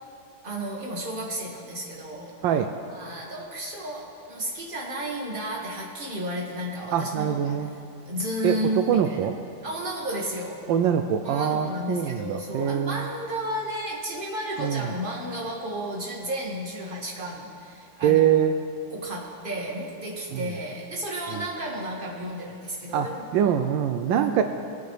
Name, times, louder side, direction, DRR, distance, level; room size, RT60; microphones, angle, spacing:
voice 1, 0.4-2.6 2.9-7.6 8.1-9.2 9.6-10.6 11.2-18.2 18.9-23.2 24.0-24.4, right 1 dB, 25° right, -2 dB, 1.9 m, -33 dB
voice 2, 6.9-7.7 8.4-9.3 10.7-13.0 14.6-14.9 18.0-18.5 20.3-20.4 21.3-21.4 22.9-24.4, right 9 dB, 80° right, 7 dB, 1.3 m, -24 dB
22.0 x 9.2 x 3.3 m, 2.4 s
omnidirectional pair, 2.1 m